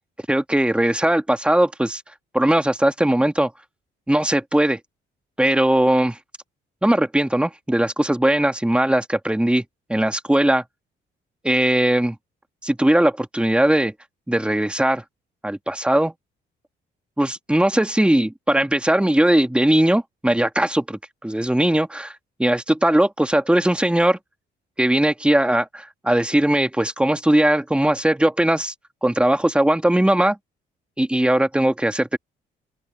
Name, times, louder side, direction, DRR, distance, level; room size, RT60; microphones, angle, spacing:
voice 1, 0.3-2.0 2.3-3.5 4.1-4.8 5.4-6.2 6.8-9.6 9.9-10.6 11.4-12.2 12.6-13.9 14.3-15.0 15.4-16.1 17.2-24.2 24.8-28.7 29.0-30.4 31.0-32.2, right 1 dB, 5° right, 1.9 m, -19 dB
open air
cardioid pair, 90°, 20 cm